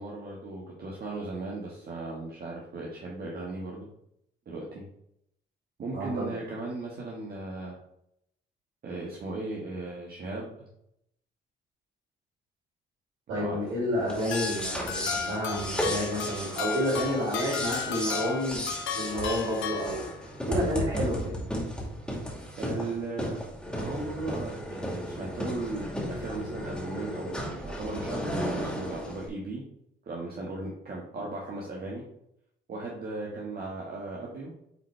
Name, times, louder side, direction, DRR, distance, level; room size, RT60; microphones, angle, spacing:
voice 1, 0.0-3.9 4.4-4.8 5.8-7.8 8.8-10.7 13.3-13.6 22.6-23.4 23.7-29.6 30.0-32.0 32.7-34.5, right 2 dB, 50° right, -3 dB, 1.6 m, -37 dB
voice 2, 5.9-6.3 13.3-18.6 18.9-21.2, equal, 80° right, -7 dB, 2.8 m, -30 dB
sound 1, 14.0-29.3, equal, 5° left, 2.6 m, -34 dB
sound 2, 14.3-20.5, left 7 dB, 85° left, 1.0 m, -35 dB
8.9 x 4.2 x 3.3 m, 0.75 s
cardioid pair, 90°, 20 cm